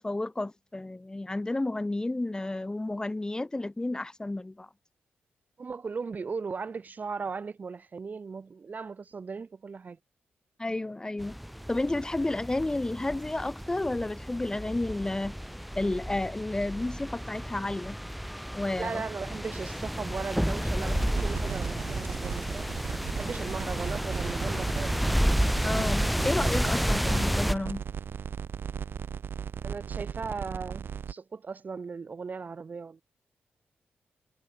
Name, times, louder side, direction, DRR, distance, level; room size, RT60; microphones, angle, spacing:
voice 1, 0.0-4.7 10.6-11.4 11.7-15.4 15.8-18.0 18.5-19.0 25.6-27.8, left 2 dB, 20° left, 1.7 m, -31 dB
voice 2, 5.6-10.0 18.8-22.7 23.2-25.1 29.6-33.0, right 5 dB, 45° right, 1.1 m, -37 dB
sound 1, 11.2-27.5, equal, ahead, 0.7 m, -31 dB
sound 2, 20.9-31.1, right 7 dB, 70° right, 1.3 m, -37 dB
cardioid pair, 80°, 4 cm